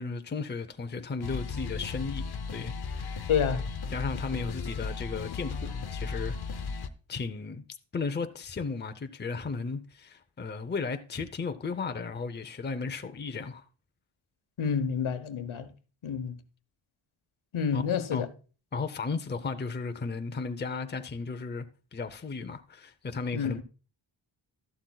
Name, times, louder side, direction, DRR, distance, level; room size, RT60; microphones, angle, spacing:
voice 1, 0.0-2.2 2.5-3.3 3.9-6.6 7.1-7.6 7.9-13.6 17.7-17.8 18.1-18.3 18.7-21.7 21.9-23.6, left 4 dB, 20° left, 0.6 m, -35 dB
sound 1, 1.2-6.9, left 4 dB, 55° left, 0.8 m, -35 dB
voice 2, 3.3-3.7 14.6-15.7 16.0-16.3 17.5-18.3 23.3-23.6, left 7 dB, 90° left, 1.0 m, -28 dB
12.5 x 11.5 x 2.3 m
wide cardioid pair, 165°, 47 cm